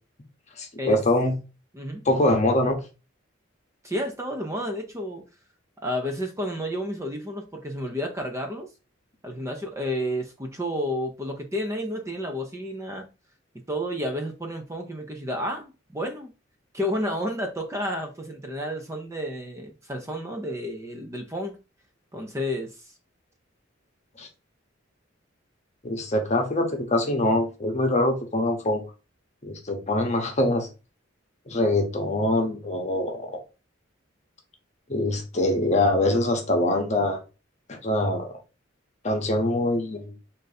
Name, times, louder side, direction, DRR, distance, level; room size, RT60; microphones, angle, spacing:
voice 1, 0.6-1.3 2.0-2.8 24.2-24.3 25.8-28.8 29.4-30.7 31.5-33.4 34.9-37.2 37.7-38.3 39.0-40.1, left 1 dB, 35° left, 0.9 m, -24 dB
voice 2, 1.7-2.0 3.8-5.2 5.8-8.7 9.2-13.0 13.7-16.3 16.7-21.5 22.1-22.8, equal, 15° right, 0.6 m, -31 dB
3.9 x 2.6 x 3.9 m
head